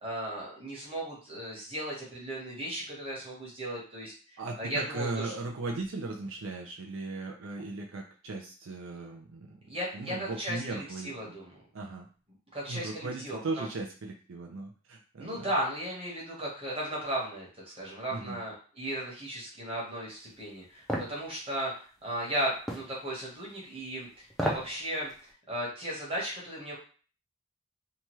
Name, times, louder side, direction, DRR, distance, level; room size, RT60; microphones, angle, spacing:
voice 1, 0.0-5.3 9.7-11.5 12.5-13.7 15.2-25.1 25.5-26.8, right 1 dB, 25° right, -5 dB, 1.0 m, -36 dB
voice 2, 4.4-9.6 9.9-11.3 11.7-12.1 12.7-15.5 18.1-18.4, right 3 dB, 75° right, 0 dB, 0.5 m, -37 dB
sound 1, 20.9-21.1 22.7-22.9 24.3-24.7 25.1-25.2, equal, ahead, 0.4 m, -31 dB
2.8 x 2.3 x 3.0 m, 0.40 s
head